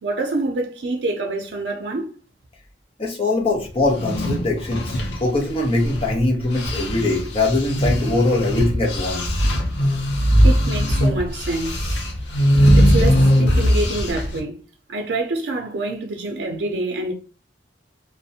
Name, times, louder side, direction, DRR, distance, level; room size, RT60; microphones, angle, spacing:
voice 1, 0.0-2.1 10.4-12.0 12.8-14.6 14.9-17.1, right 2 dB, 70° right, 0.5 m, -26 dB
voice 2, 3.0-9.4, left 2 dB, 30° left, 0.7 m, -22 dB
sound 1, 3.8-6.2 6.5-14.4, equal, 80° left, 0.6 m, -19 dB
2.4 x 2.0 x 2.6 m
head